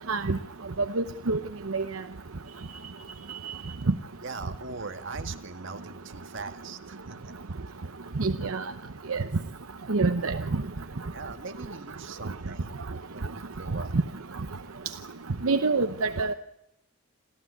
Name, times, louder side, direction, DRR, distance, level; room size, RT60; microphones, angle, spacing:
voice 1, 1.0-1.4 1.7-1.8 8.2-8.6 9.1-9.2 9.9-10.4 15.4-16.3, right 3 dB, 75° right, 9 dB, 0.9 m, -26 dB
voice 2, 4.2-7.3 10.8-10.9 11.1-12.8 13.1-13.9, right 4 dB, 60° right, 6 dB, 1.8 m, -41 dB
28.0 x 14.5 x 9.6 m, 0.84 s
head